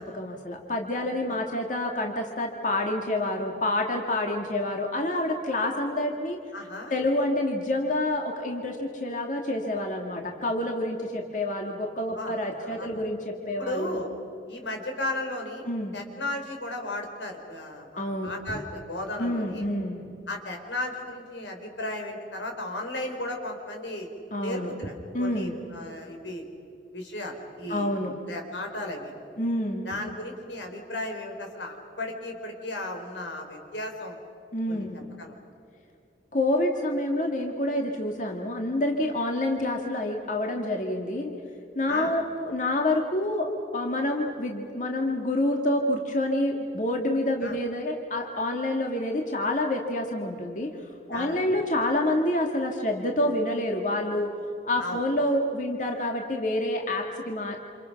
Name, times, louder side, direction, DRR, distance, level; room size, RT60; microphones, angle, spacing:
voice 1, 0.0-6.4 6.9-14.0 15.7-16.0 18.0-18.3 19.2-20.0 24.3-24.7 25.1-25.6 27.7-28.1 29.4-29.9 34.5-35.0 36.3-41.3 41.8-54.3 54.7-57.6, left 1 dB, 45° left, 2 dB, 2.0 m, -28 dB
voice 2, 6.5-6.9 12.2-12.3 12.6-13.0 13.6-14.1 14.5-15.7 15.9-19.6 20.3-24.1 24.4-26.5 26.9-27.9 28.3-29.2 29.8-34.2 34.7-34.9 35.2-35.3 41.9-42.1 47.4-47.6 51.1-51.4 54.8-55.0, left 1 dB, 90° left, 3 dB, 4.6 m, -35 dB
29.0 x 28.0 x 5.9 m, 2.6 s
head